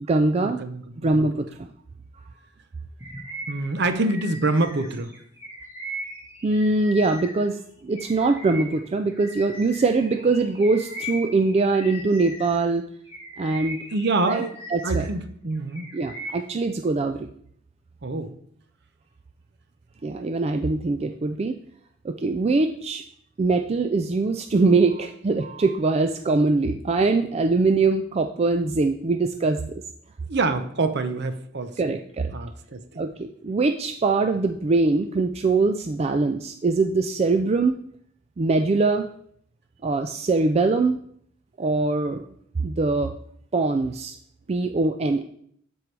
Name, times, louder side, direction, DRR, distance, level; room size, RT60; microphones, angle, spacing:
voice 1, 0.0-0.6 1.0-1.7 6.4-12.8 13.4-13.8 14.3-14.4 14.7-15.1 15.9-17.3 20.0-21.6 22.0-23.0 23.4-29.8 31.8-32.3 33.0-37.8 38.4-39.1 39.8-41.0 41.6-42.3 42.6-43.1 43.5-44.1 44.5-45.2, right 3 dB, 30° right, 6 dB, 0.3 m, -22 dB
voice 2, 0.6-1.2 3.5-5.1 13.9-14.6 14.8-15.9 18.0-18.3 30.3-32.0 32.3-33.0, right 2 dB, 60° right, 9 dB, 0.7 m, -26 dB
Bird vocalization bird call bird song, 3.0-7.5 7.9-12.7 13.1-15.1 15.5-16.6, equal, 15° right, 1.6 m, -39 dB
12.5 x 4.6 x 3.3 m, 0.64 s
head